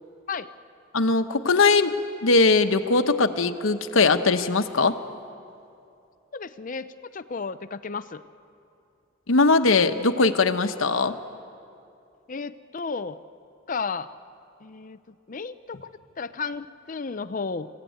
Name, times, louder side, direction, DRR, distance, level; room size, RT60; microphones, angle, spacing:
voice 1, 0.9-1.9 2.2-5.0 9.3-11.1, left 3 dB, 85° left, 8 dB, 1.1 m, -20 dB
voice 2, 6.3-8.2 12.3-13.2 13.7-14.1 14.6-15.0 15.3-15.9 16.2-17.7, left 4 dB, 40° left, 13 dB, 0.5 m, -33 dB
26.5 x 15.5 x 9.3 m, 2.7 s
head